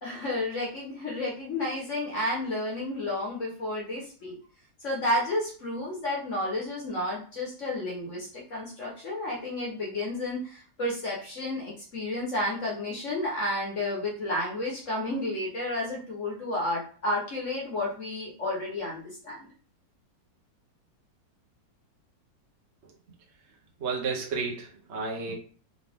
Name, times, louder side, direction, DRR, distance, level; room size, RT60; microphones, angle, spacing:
voice 1, 0.0-4.4 4.8-19.5, left 1 dB, 45° left, -3 dB, 1.3 m, -31 dB
voice 2, 23.8-25.3, right 4 dB, 50° right, -1 dB, 0.9 m, -32 dB
3.9 x 2.9 x 3.5 m, 0.42 s
omnidirectional pair, 2.0 m